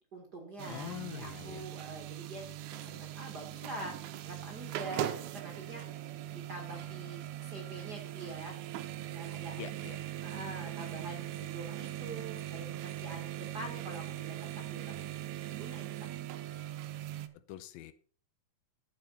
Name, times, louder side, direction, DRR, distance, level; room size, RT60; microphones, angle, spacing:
voice 1, 0.1-5.8 6.3-8.7 9.1-9.6 10.2-14.3 14.7-15.1 15.4-16.1, right 2 dB, 35° right, 1 dB, 1.8 m, -45 dB
sound 1, 0.6-17.3, right 12 dB, 80° right, 1.7 m, -40 dB
voice 2, 0.7-1.7 9.6-10.0 17.5-17.9, left 14 dB, 85° left, 12 dB, 2.6 m, -44 dB
11.5 x 6.7 x 5.6 m, 0.42 s
omnidirectional pair, 4.2 m